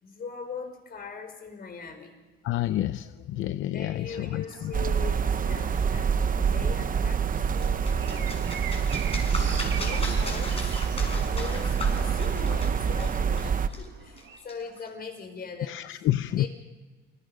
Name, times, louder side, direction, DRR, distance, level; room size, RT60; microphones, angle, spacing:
voice 1, 0.0-2.1 3.7-8.6 9.3-15.8 16.3-16.5, left 5 dB, 50° left, 6 dB, 5.4 m, -41 dB
voice 2, 2.4-4.7 15.7-16.5, left 13 dB, 80° left, 12 dB, 0.6 m, -29 dB
sound 1, 4.1-14.4, right 9 dB, 75° right, 2.1 m, -44 dB
sound 2, 4.7-13.7, right 6 dB, 45° right, 0.9 m, -26 dB
sound 3, 7.4-14.9, left 3 dB, 30° left, 6.7 m, -39 dB
29.5 x 21.0 x 5.2 m, 1.3 s
cardioid pair, 90°, 20 cm